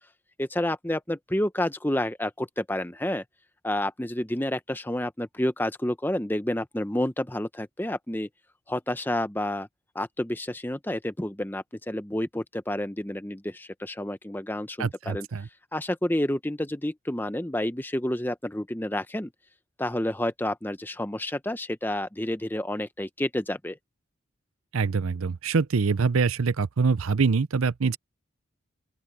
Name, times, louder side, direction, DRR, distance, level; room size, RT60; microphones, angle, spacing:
voice 1, 0.4-3.2 3.6-8.3 8.7-9.7 9.9-15.3 15.7-19.3 19.8-23.8, left 1 dB, 10° left, 0.8 m, -29 dB
voice 2, 14.8-15.5 24.7-28.0, right 5 dB, 90° right, 0.6 m, -24 dB
open air
head